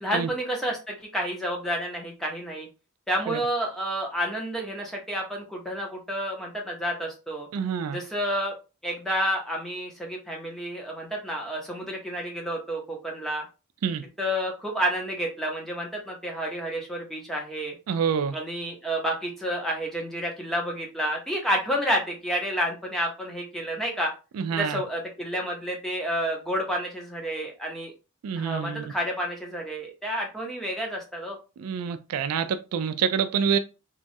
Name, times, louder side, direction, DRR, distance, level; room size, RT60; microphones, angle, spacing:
voice 1, 0.0-2.7 3.1-7.5 7.9-8.5 8.8-13.4 14.2-17.7 18.3-24.1 24.5-27.9 28.4-31.4, equal, ahead, 0.7 m, -30 dB
voice 2, 7.5-8.0 13.8-14.0 17.9-18.4 24.4-24.8 28.2-28.8 31.6-33.6, right 7 dB, 75° right, 0.3 m, -27 dB
3.0 x 2.3 x 2.6 m
head